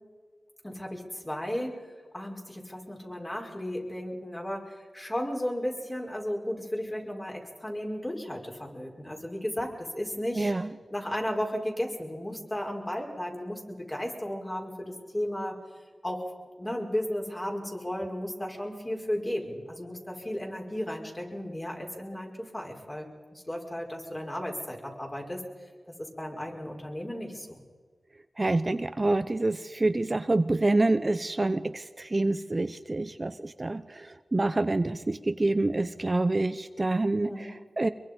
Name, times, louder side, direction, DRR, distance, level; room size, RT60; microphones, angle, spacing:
voice 1, 0.6-1.8 2.1-10.5 10.9-15.6 16.0-16.3 16.6-25.4 25.9-27.6 37.2-37.5, equal, 25° left, 0 dB, 5.4 m, -34 dB
voice 2, 10.3-10.7 28.4-37.9, right 2 dB, 35° right, 11 dB, 0.7 m, -27 dB
25.0 x 23.0 x 5.4 m, 1.5 s
cardioid pair, 60°, 0 cm